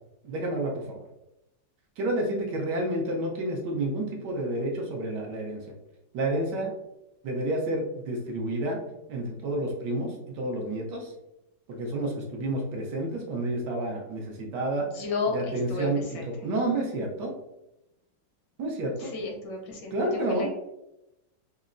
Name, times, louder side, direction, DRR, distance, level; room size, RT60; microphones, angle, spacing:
voice 1, 0.2-1.0 2.0-5.6 6.1-6.7 7.2-8.8 9.1-11.1 11.7-14.9 15.3-17.3 18.6-19.1 19.9-20.5, right 1 dB, 70° right, 0 dB, 1.3 m, -30 dB
voice 2, 14.9-16.2 19.0-20.5, left 3 dB, 80° left, 0 dB, 1.7 m, -33 dB
5.4 x 2.0 x 2.5 m, 0.88 s
omnidirectional pair, 2.1 m